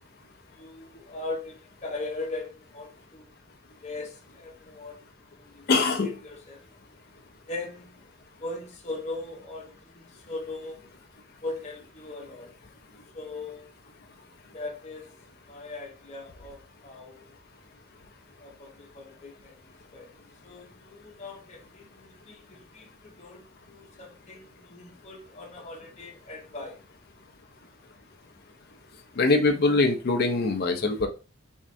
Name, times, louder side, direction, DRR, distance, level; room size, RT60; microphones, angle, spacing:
voice 1, 0.5-3.2 3.8-5.0 5.3-5.6 6.0-6.7 7.5-8.0 8.4-10.8 11.4-12.5 13.1-13.7 14.5-15.1 15.5-17.4 18.4-20.1 20.4-26.8, left 2 dB, 35° left, 0.9 m, -39 dB
voice 2, 5.7-6.2 29.2-31.1, left 3 dB, 50° left, 0.5 m, -23 dB
3.5 x 3.2 x 2.5 m
head